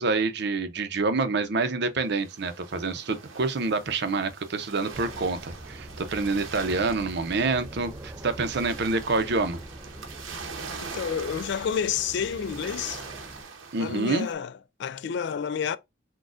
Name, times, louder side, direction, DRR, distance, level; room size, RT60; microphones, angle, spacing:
voice 1, 0.0-9.6 13.7-14.3, right 3 dB, 60° right, 0.7 m, -27 dB
sound 1, 2.1-14.3, right 5 dB, 90° right, 1.0 m, -43 dB
sound 2, 4.9-13.4, right 1 dB, 15° right, 0.3 m, -44 dB
voice 2, 10.8-13.0 13.8-15.8, left 7 dB, 60° left, 0.3 m, -30 dB
6.2 x 2.3 x 2.5 m
head